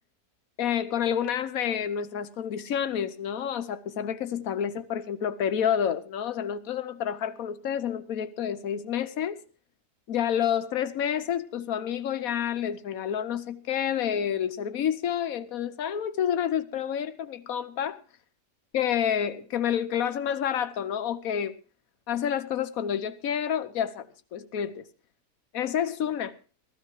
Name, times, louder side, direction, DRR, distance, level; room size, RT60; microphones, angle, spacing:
voice 1, 0.6-9.4 10.1-18.0 18.7-21.6 22.1-24.9 25.5-26.3, left 9 dB, 65° left, 1.4 m, -29 dB
15.5 x 14.5 x 4.6 m
omnidirectional pair, 1.7 m